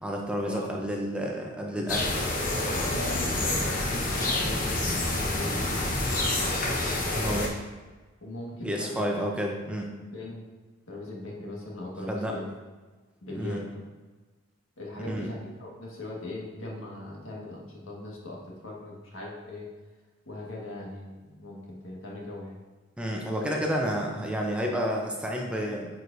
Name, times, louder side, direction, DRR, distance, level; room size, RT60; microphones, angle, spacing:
voice 1, 0.0-2.2 7.1-7.6 8.6-9.9 12.1-12.3 13.3-13.6 15.1-15.3 23.0-25.9, equal, 5° right, 0 dB, 0.6 m, -30 dB
voice 2, 1.7-2.3 2.7-5.9 6.4-6.6 8.2-9.1 9.7-10.5 10.9-12.5 13.2-13.8 14.8-19.7 20.2-22.6, left 1 dB, 75° left, -3 dB, 1.6 m, -40 dB
sound 1, 1.9-7.5, left 2 dB, 40° left, 1.0 m, -28 dB
9.2 x 4.7 x 2.6 m, 1.3 s
head